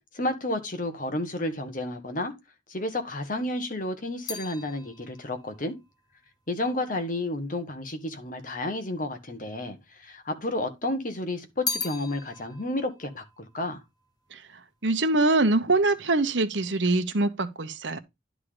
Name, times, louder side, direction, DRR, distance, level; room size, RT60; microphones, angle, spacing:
voice 1, 0.1-2.3 2.7-5.7 6.5-13.8, left 1 dB, 45° left, 1.5 m, -31 dB
sound 1, 3.3-7.7 8.5-9.3 9.6-10.7 11.1-14.6 14.9-15.4, left 4 dB, 20° left, 1.0 m, -39 dB
voice 2, 14.8-18.0, right 2 dB, 80° right, 1.1 m, -23 dB
11.0 x 3.8 x 5.0 m
head